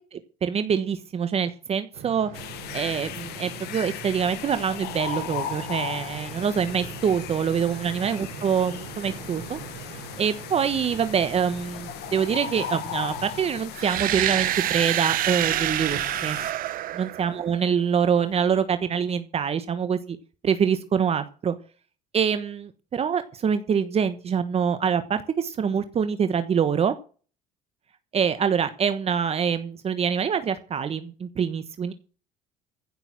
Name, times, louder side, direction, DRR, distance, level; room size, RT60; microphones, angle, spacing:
voice 1, 0.1-9.6 10.2-16.4 17.0-20.2 20.4-21.5 22.1-26.9 28.1-31.9, right 7 dB, 35° right, 11 dB, 1.2 m, -25 dB
sound 1, 1.9-13.5, right 9 dB, 90° right, 3.8 m, -42 dB
sound 2, 2.3-16.5, left 10 dB, 70° left, 1.7 m, -37 dB
sound 3, 13.7-17.7, right 13 dB, 55° right, 0.9 m, -27 dB
15.5 x 6.8 x 7.7 m, 0.39 s
cardioid pair, 110°, 17 cm